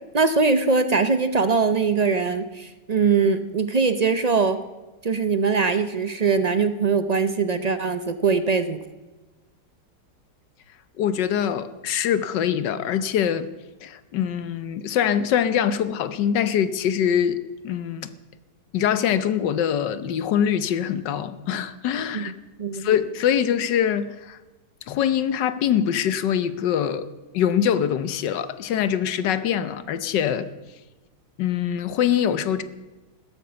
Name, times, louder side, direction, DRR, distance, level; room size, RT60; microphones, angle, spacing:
voice 1, 0.1-4.6 5.0-8.8 22.1-22.3 22.6-22.9, right 5 dB, 65° right, 0.3 m, -22 dB
voice 2, 11.0-13.5 13.8-18.1 18.7-22.3 22.7-24.4 24.9-27.1 27.3-30.5 31.4-32.6, left 9 dB, 90° left, 1.5 m, -23 dB
16.0 x 12.5 x 6.9 m
omnidirectional pair, 1.8 m